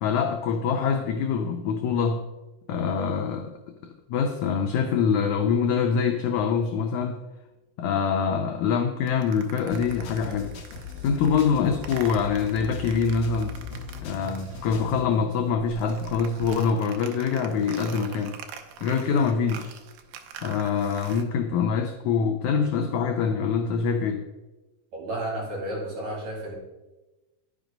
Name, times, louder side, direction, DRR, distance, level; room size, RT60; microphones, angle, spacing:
voice 1, 0.0-2.3 2.7-7.2 7.8-10.6 11.0-13.6 14.0-18.4 18.8-19.7 20.4-24.3, left 6 dB, 85° left, 4 dB, 1.7 m, -25 dB
sound 1, 9.1-15.1 15.4-21.2, right 6 dB, 85° right, 2.6 m, -44 dB
sound 2, 9.7-15.1, left 6 dB, 65° left, 1.7 m, -39 dB
voice 2, 24.9-26.6, right 1 dB, 50° right, -4 dB, 3.9 m, -32 dB
10.0 x 6.2 x 5.2 m, 1.1 s
omnidirectional pair, 4.2 m